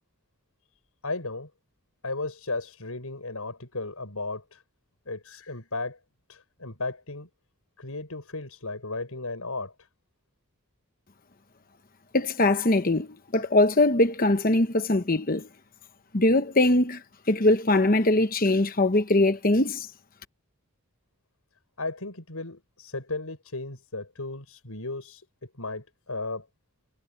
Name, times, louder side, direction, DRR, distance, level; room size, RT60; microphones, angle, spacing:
voice 1, 1.0-1.5 2.0-4.6 5.1-6.0 6.3-7.3 7.8-9.7 21.8-26.5, left 3 dB, 80° left, 5.7 m, -35 dB
voice 2, 12.1-15.5 16.1-19.9, left 2 dB, 40° left, 1.1 m, -22 dB
head